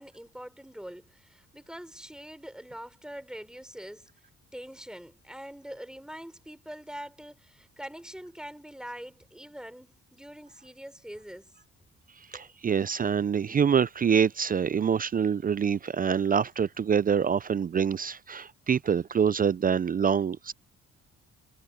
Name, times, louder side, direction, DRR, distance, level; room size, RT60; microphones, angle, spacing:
voice 1, 0.0-4.1 4.5-11.5 12.3-12.5, equal, ahead, 4.6 m, -44 dB
voice 2, 12.3-20.5, right 7 dB, 30° right, 0.4 m, -25 dB
cardioid pair, 90°, 30 cm